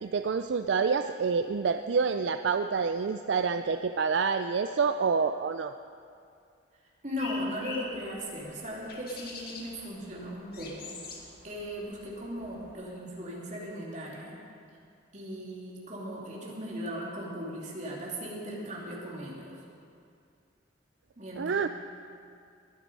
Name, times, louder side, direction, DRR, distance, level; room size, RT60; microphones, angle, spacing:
voice 1, 0.0-5.7 21.4-21.7, right 5 dB, 70° right, 8 dB, 0.4 m, -27 dB
voice 2, 7.0-11.0 11.4-14.3 15.1-19.5 21.2-21.7, equal, 40° right, -4 dB, 3.0 m, -38 dB
sound 1, 7.1-12.9, left 3 dB, 55° left, 2.0 m, -46 dB
21.5 x 9.4 x 5.4 m, 2.4 s
head